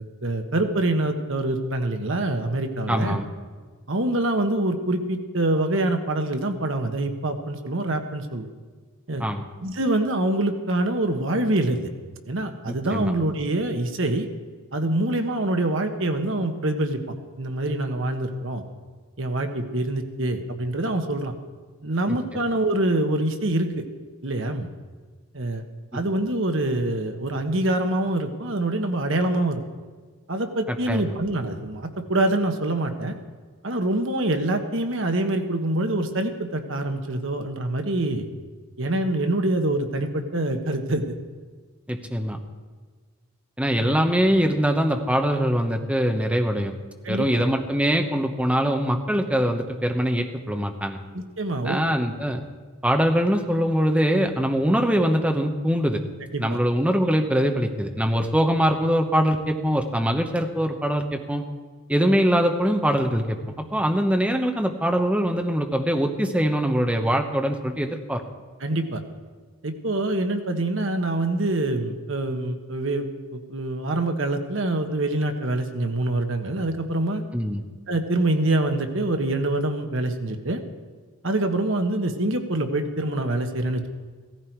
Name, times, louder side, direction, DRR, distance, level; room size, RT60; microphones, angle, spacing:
voice 1, 0.2-3.2 3.9-8.5 9.1-9.2 9.6-11.9 12.3-14.3 14.7-17.0 17.4-18.6 19.2-21.3 21.8-23.8 24.2-24.7 25.3-25.6 25.9-29.6 30.3-33.2 33.6-38.3 38.8-41.1 47.0-47.4 51.1-51.8 56.3-56.6 68.6-69.0 69.6-77.2 77.9-80.6 81.2-83.9, right 1 dB, 60° right, 6 dB, 1.3 m, -25 dB
voice 2, 2.9-3.3 9.2-9.5 12.7-13.1 22.1-22.2 25.9-26.0 30.7-31.0 41.9-42.4 43.6-46.7 47.1-51.0 51.6-52.4 52.8-56.0 56.4-61.4 61.9-63.4 63.7-68.2 77.3-77.6, equal, 5° right, 4 dB, 1.0 m, -23 dB
16.0 x 15.0 x 4.6 m, 1.5 s
head